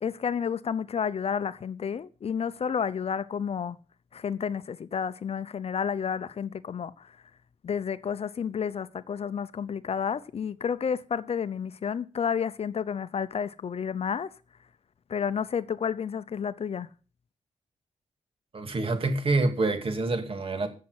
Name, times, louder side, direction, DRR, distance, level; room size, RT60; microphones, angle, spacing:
voice 1, 0.0-3.8 4.1-7.1 7.6-14.3 15.1-16.9, left 7 dB, 50° left, 0.7 m, -31 dB
voice 2, 18.5-20.7, right 2 dB, 45° right, 2.6 m, -27 dB
14.5 x 7.4 x 6.5 m
cardioid pair, 95°, 13 cm